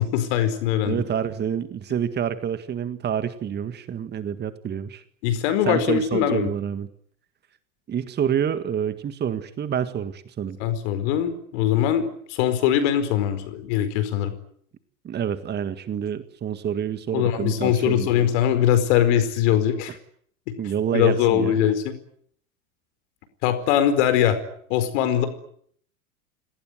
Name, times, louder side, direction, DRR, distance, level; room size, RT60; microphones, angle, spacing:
voice 1, 0.0-1.0 5.2-6.5 10.6-14.3 17.1-20.0 20.9-21.9 23.4-24.4 24.7-25.3, left 10 dB, 55° left, 10 dB, 4.7 m, -21 dB
voice 2, 0.9-5.0 5.7-6.9 7.9-10.6 15.0-18.1 20.6-21.6, right 8 dB, 25° right, 12 dB, 1.8 m, -27 dB
28.5 x 19.5 x 9.3 m, 0.64 s
figure-of-eight pair, 90°, 42 cm